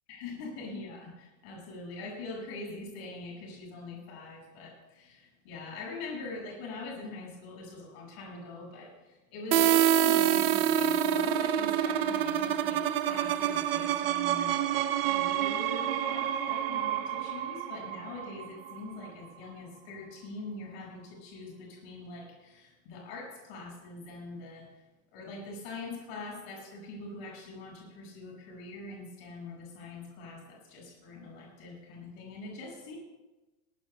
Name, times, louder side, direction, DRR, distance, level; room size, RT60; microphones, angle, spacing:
voice 1, 0.1-24.8 25.1-33.0, left 3 dB, 45° left, -2 dB, 5.8 m, -43 dB
sound 1, 9.5-19.1, right 10 dB, 40° right, 0.6 m, -27 dB
20.0 x 18.5 x 2.2 m, 1.1 s
supercardioid pair, 170°, 44 cm